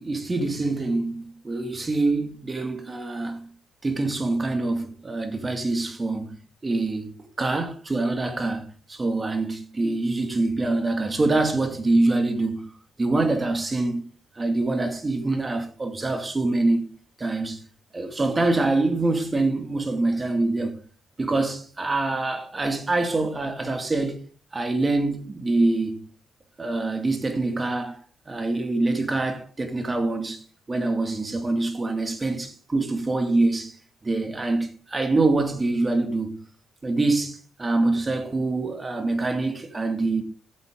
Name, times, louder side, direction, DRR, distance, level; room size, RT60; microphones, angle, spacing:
voice 1, 0.0-3.5 3.8-6.4 6.6-12.7 13.0-14.0 14.4-16.9 17.2-17.6 17.9-20.8 21.2-24.3 24.5-26.0 26.6-33.8 34.0-36.4 36.8-40.2, right 2 dB, 25° right, 2.3 m, -25 dB
14.0 x 8.1 x 3.8 m
cardioid pair, 90°, 0 cm